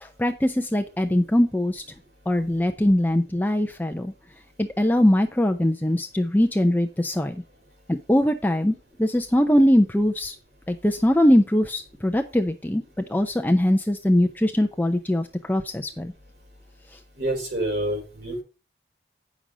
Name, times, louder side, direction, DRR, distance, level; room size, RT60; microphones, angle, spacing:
voice 1, 0.0-1.8 2.3-4.1 4.6-7.4 7.9-10.3 10.7-12.8 13.1-16.1, left 1 dB, 10° left, 5 dB, 0.5 m, -21 dB
voice 2, 17.1-18.4, right 1 dB, 60° right, 1 dB, 4.2 m, -27 dB
8.8 x 6.2 x 5.0 m, 0.32 s
head